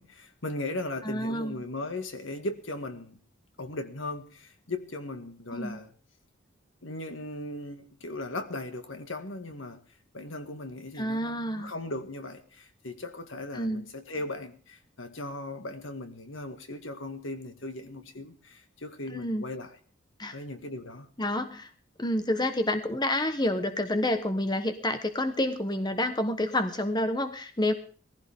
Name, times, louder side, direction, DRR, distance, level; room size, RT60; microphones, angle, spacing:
voice 1, 0.0-3.2 3.6-5.9 6.8-9.8 10.1-19.8 20.3-21.1, left 2 dB, 75° left, 2.0 m, -38 dB
voice 2, 1.0-1.6 5.5-5.8 11.0-11.7 13.5-13.8 19.1-19.4 20.2-20.4 21.2-21.7 22.0-27.7, left 1 dB, 20° left, 1.1 m, -29 dB
20.0 x 15.0 x 3.6 m
head